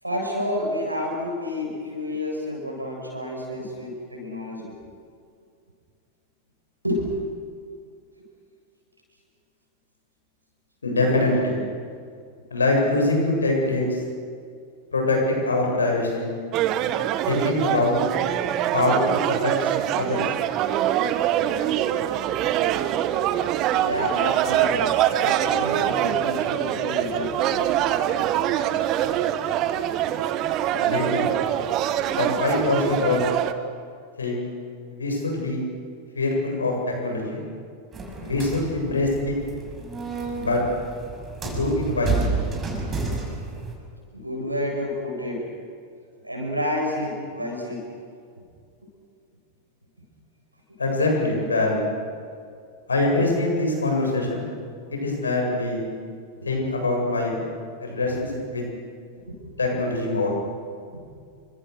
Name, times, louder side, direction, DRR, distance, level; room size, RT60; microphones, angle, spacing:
voice 1, 0.0-4.7 6.8-7.1 23.8-27.6 44.1-45.4 46.2-47.8 56.4-56.5 59.3-59.4 60.9-61.0, left 1 dB, 85° right, 0 dB, 7.7 m, -29 dB
voice 2, 10.8-11.6 12.5-14.0 14.9-16.3 17.3-18.0 18.7-19.5 20.0-20.2 30.8-31.3 32.1-33.3 34.2-34.4 34.9-35.6 36.1-37.4 38.2-39.4 40.3-40.6 41.4-42.3 50.8-51.8 52.9-54.5 54.9-55.8 56.5-57.4 57.8-58.7 59.6-60.3, left 2 dB, 75° left, 0 dB, 8.0 m, -23 dB
sound 1, 16.5-33.5, right 11 dB, 35° right, 1.4 m, -24 dB
sound 2, 37.9-43.7, right 4 dB, 20° right, 6.6 m, -30 dB
30.0 x 25.0 x 6.7 m, 2.3 s
figure-of-eight pair, 90°, 0 cm